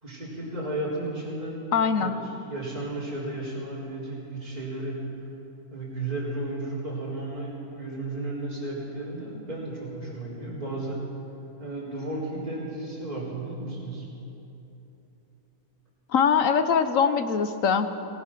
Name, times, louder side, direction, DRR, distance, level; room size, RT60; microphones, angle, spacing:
voice 1, 0.0-5.1 5.7-11.2 11.6-14.1, right 2 dB, 25° right, -7 dB, 4.1 m, -34 dB
voice 2, 1.7-2.2 16.1-17.9, left 6 dB, 65° left, 10 dB, 1.3 m, -22 dB
23.0 x 20.0 x 6.2 m, 2.9 s
omnidirectional pair, 1.6 m